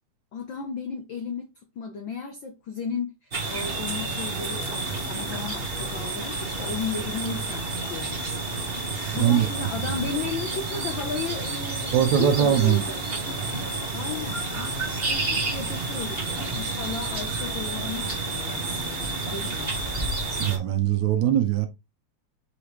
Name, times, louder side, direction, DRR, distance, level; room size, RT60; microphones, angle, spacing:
voice 1, 0.3-8.4 9.1-13.0 13.9-14.8 15.1-19.9, left 5 dB, 80° left, 1.0 m, -34 dB
sound 1, 3.3-20.6, right 3 dB, 50° right, 0.7 m, -30 dB
voice 2, 9.1-9.5 9.7-10.0 11.9-12.8 20.4-21.7, right 10 dB, 90° right, 2.2 m, -21 dB
6.1 x 5.0 x 3.1 m
omnidirectional pair, 3.3 m